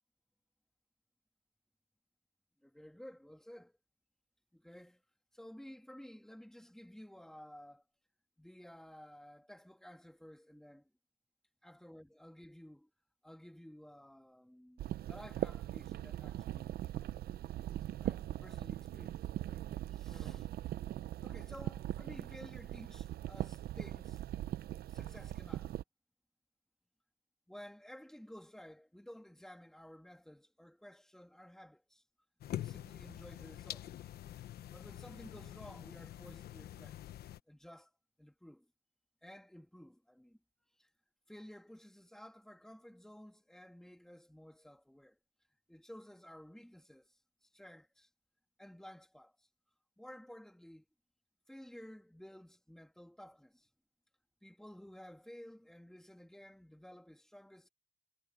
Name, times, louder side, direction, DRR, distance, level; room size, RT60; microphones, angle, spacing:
voice 1, 2.6-3.7 4.5-5.0 5.3-7.8 8.4-10.9 11.6-12.9 13.2-17.1 18.0-19.2 19.4-19.6 19.9-20.5 21.2-24.2 24.9-25.7 27.5-32.0 32.5-33.9 34.7-37.0 37.5-37.9 38.2-38.7 39.2-40.4 40.8-40.9 41.3-45.2 45.7-48.1 48.6-49.5 50.0-50.8 51.5-53.7 54.4-57.7, equal, 5° left, 2.8 m, -54 dB
sound 1, 14.8-25.8, right 13 dB, 75° right, 0.7 m, -40 dB
sound 2, 32.4-37.4, left 12 dB, 80° left, 1.1 m, -46 dB
cardioid pair, 80°, 16 cm